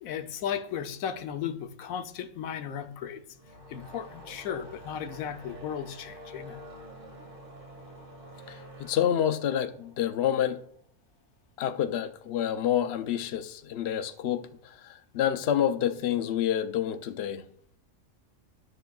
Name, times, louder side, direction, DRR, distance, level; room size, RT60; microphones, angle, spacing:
voice 1, 0.0-3.2 3.7-6.6, left 8 dB, 90° left, 1.1 m, -35 dB
sound 1, 3.3-10.7, equal, 40° right, 1.9 m, -48 dB
voice 2, 8.5-10.6 11.6-17.5, left 10 dB, 60° left, 0.8 m, -28 dB
13.0 x 6.6 x 2.3 m
omnidirectional pair, 1.4 m